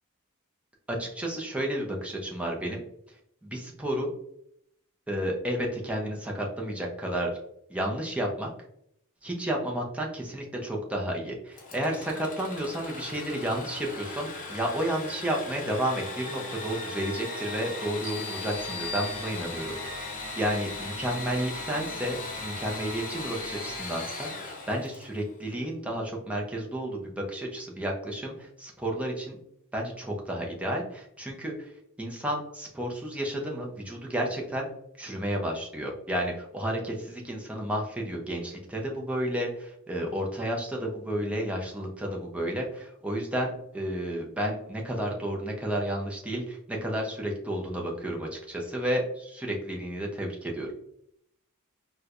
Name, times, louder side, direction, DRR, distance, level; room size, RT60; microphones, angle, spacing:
voice 1, 0.9-2.8 3.4-4.1 5.1-7.3 7.7-8.5 9.2-29.4 29.7-31.5 32.0-34.7 35.0-50.7, right 1 dB, 5° right, -1 dB, 0.6 m, -32 dB
Engine / Sawing, 11.5-25.3, left 3 dB, 35° left, 0.7 m, -38 dB
sound 1, 18.0-19.9, left 5 dB, 65° right, 1.0 m, -40 dB
sound 2, 18.4-24.0, right 3 dB, 85° right, 0.7 m, -47 dB
4.3 x 2.2 x 2.5 m, 0.75 s
head